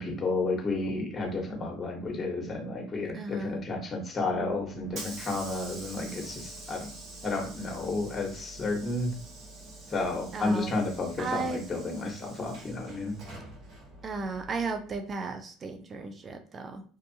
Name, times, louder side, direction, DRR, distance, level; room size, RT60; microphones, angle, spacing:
voice 1, 0.0-6.9 7.2-9.1 9.9-13.2, left 2 dB, 25° left, 1 dB, 1.0 m, -32 dB
voice 2, 3.1-3.6 10.3-10.8 11.2-11.6 14.0-16.8, right 4 dB, 35° right, 6 dB, 0.4 m, -34 dB
Hiss / Sliding door, 4.3-15.1, right 2 dB, 55° right, 1.0 m, -46 dB
2.5 x 2.3 x 2.7 m, 0.41 s
supercardioid pair, 95°, 0 cm